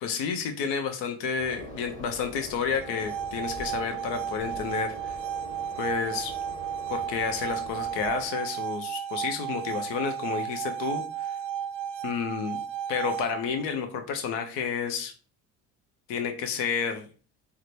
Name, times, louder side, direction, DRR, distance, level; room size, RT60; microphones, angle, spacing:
voice 1, 0.0-5.2 5.8-6.3 6.9-11.4 12.0-12.6 12.9-15.1 16.1-17.1, left 6 dB, 60° left, 6 dB, 0.8 m, -30 dB
sound 1, 1.4-8.3, equal, 15° left, 1.4 m, -43 dB
sound 2, 2.7-13.7, right 9 dB, 60° right, 0.6 m, -34 dB
3.7 x 2.2 x 3.0 m, 0.37 s
hypercardioid pair, 65°, 48 cm